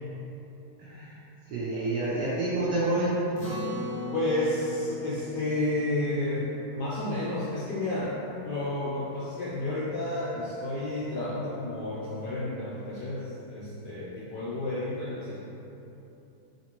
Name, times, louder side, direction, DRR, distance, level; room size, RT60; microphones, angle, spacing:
voice 1, 0.8-1.2 1.5-3.2, right 2 dB, 70° right, -8 dB, 1.1 m, -28 dB
Acoustic guitar, 3.4-8.1, equal, 45° left, 0.7 m, -40 dB
voice 2, 4.1-8.2 8.4-15.4, left 1 dB, 75° left, -8 dB, 0.9 m, -31 dB
5.0 x 2.9 x 2.9 m, 3.0 s
omnidirectional pair, 2.3 m